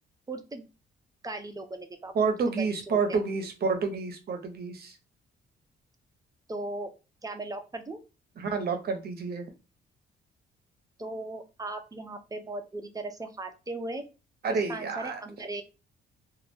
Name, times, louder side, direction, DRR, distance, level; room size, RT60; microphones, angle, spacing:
voice 1, 0.3-0.6 1.2-3.2 6.5-6.9 7.2-8.0 11.0-14.0 14.5-15.6, right 2 dB, 20° right, 7 dB, 0.5 m, -37 dB
voice 2, 2.1-5.0 8.4-9.5 14.4-15.2, right 4 dB, 55° right, 6 dB, 0.7 m, -29 dB
2.3 x 2.0 x 3.2 m, 0.30 s
cardioid pair, 90°, 20 cm